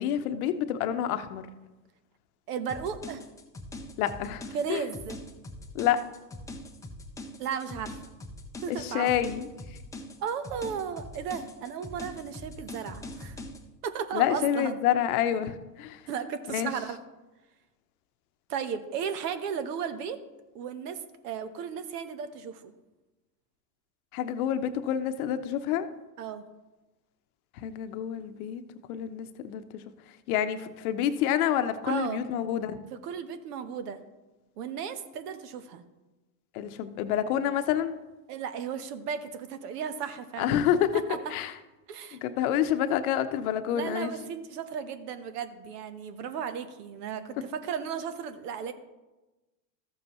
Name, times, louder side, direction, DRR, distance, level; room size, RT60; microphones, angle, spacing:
voice 1, 0.0-1.4 4.0-4.8 5.7-6.0 8.7-9.8 14.1-16.0 16.5-16.7 24.1-25.9 27.6-28.6 28.9-29.8 30.3-32.8 36.5-38.0 40.4-41.0 41.3-41.5 42.1-44.1, left 10 dB, 60° left, 10 dB, 0.8 m, -28 dB
voice 2, 2.5-3.2 4.5-5.2 7.4-8.0 8.6-9.1 10.2-13.4 13.8-14.7 16.1-17.0 18.5-20.2 20.5-22.7 26.2-26.4 31.8-32.2 32.9-34.0 34.6-35.8 38.3-40.7 40.9-41.2 41.9-42.2 43.7-48.7, right 7 dB, 70° right, 11 dB, 1.1 m, -35 dB
sound 1, 2.7-13.6, left 1 dB, 5° left, 0.5 m, -42 dB
13.5 x 7.0 x 3.0 m, 1.1 s
hypercardioid pair, 110°, 50 cm